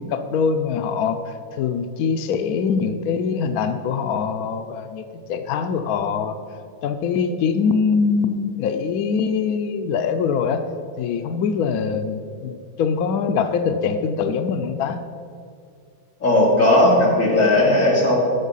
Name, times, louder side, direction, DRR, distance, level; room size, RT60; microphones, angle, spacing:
voice 1, 0.0-6.4 6.8-10.7 11.0-15.0, left 6 dB, 85° left, 8 dB, 0.8 m, -23 dB
voice 2, 16.2-18.2, left 1 dB, 40° left, -4 dB, 2.6 m, -16 dB
11.0 x 6.6 x 5.5 m, 2.2 s
omnidirectional pair, 2.2 m